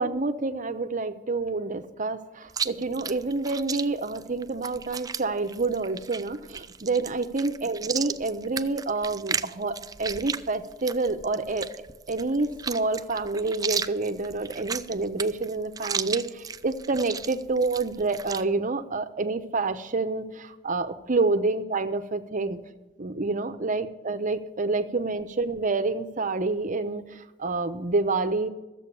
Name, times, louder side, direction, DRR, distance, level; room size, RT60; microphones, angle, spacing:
voice 1, 0.0-22.6 23.0-28.5, right 3 dB, 40° right, 9 dB, 0.8 m, -28 dB
Chewing mastication, 2.5-18.4, right 6 dB, 20° right, 0.4 m, -35 dB
13.5 x 7.7 x 6.9 m, 1.1 s
head